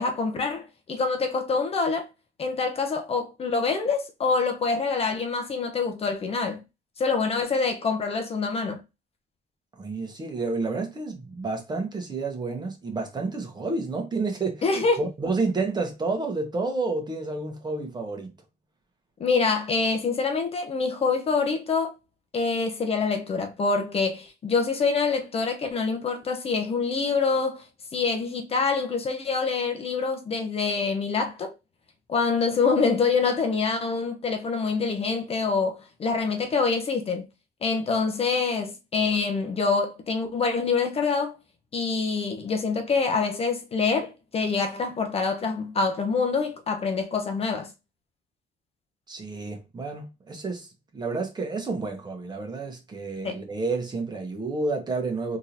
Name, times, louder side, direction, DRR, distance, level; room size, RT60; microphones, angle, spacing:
voice 1, 0.0-2.1 2.4-6.6 7.0-8.8 14.6-15.0 19.2-21.9 22.3-27.7 27.9-31.5 32.1-37.3 37.6-41.4 41.7-47.7 53.2-53.4, left 4 dB, 35° left, 0.7 m, -26 dB
voice 2, 9.8-18.3 49.1-55.4, right 3 dB, 25° right, 1.2 m, -30 dB
3.7 x 3.0 x 2.6 m
cardioid pair, 110°, 17 cm